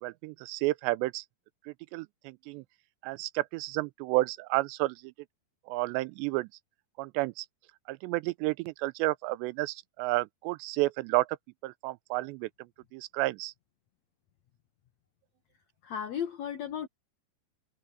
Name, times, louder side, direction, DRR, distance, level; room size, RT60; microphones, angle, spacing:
voice 1, 0.0-1.2 1.9-2.6 3.0-5.1 5.7-6.5 7.0-7.5 7.9-11.3 11.6-12.5 12.9-13.5, right 20 dB, 90° right, 2.8 m, -31 dB
voice 2, 15.8-16.9, left 8 dB, 80° left, 1.5 m, -34 dB
omnidirectional pair, 4.9 m